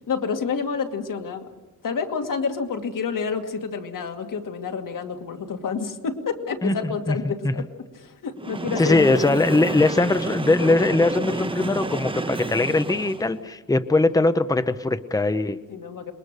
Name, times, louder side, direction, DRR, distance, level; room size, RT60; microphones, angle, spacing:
voice 1, 0.1-1.5 1.8-7.7 8.0-9.4 15.7-16.1, left 5 dB, 80° left, 4 dB, 2.3 m, -29 dB
voice 2, 6.6-7.7 8.8-15.6, left 2 dB, 10° left, 11 dB, 0.8 m, -21 dB
Train, 8.4-13.4, right 2 dB, 15° right, 1.0 m, -30 dB
27.5 x 21.5 x 6.7 m, 1.2 s
wide cardioid pair, 145°, 32 cm